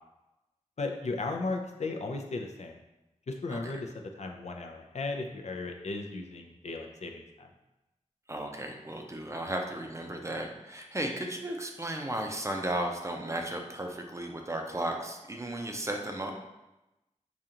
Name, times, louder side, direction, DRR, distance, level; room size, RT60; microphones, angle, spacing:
voice 1, 0.8-2.8 3.3-7.5, left 3 dB, 60° left, 3 dB, 0.4 m, -36 dB
voice 2, 8.3-16.3, right 1 dB, 25° right, 2 dB, 0.5 m, -35 dB
5.0 x 2.4 x 2.8 m, 0.98 s
wide cardioid pair, 60°, 13 cm